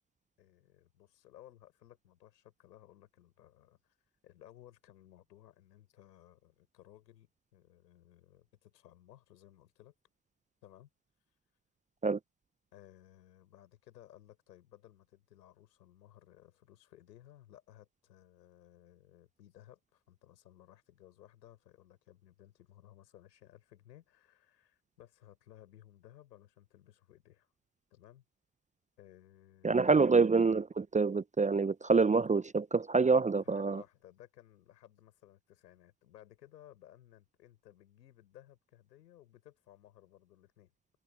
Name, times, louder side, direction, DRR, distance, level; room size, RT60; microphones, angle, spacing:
voice 1, 0.4-3.9 4.2-9.9 10.6-10.9 12.7-27.5 27.9-28.2 29.0-30.1 33.4-40.7, left 12 dB, 80° left, 6.5 m, -59 dB
voice 2, 29.6-33.8, right 4 dB, 15° right, 0.7 m, -26 dB
figure-of-eight pair, 60°, 50 cm